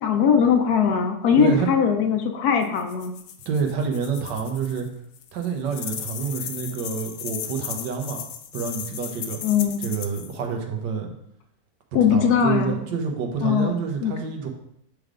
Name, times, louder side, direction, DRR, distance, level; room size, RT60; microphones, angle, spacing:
voice 1, 0.0-3.1 9.4-9.8 11.9-12.8 13.4-13.7 14.0-14.1, left 7 dB, 70° left, 5 dB, 1.1 m, -20 dB
voice 2, 1.4-1.7 3.5-4.9 5.3-8.2 8.5-9.4 9.8-11.1 12.1-14.5, right 6 dB, 80° right, 3 dB, 1.5 m, -28 dB
sound 1, 2.6-4.9 5.1-10.4, left 9 dB, 85° left, 1.3 m, -36 dB
7.6 x 3.4 x 3.7 m, 0.74 s
omnidirectional pair, 1.9 m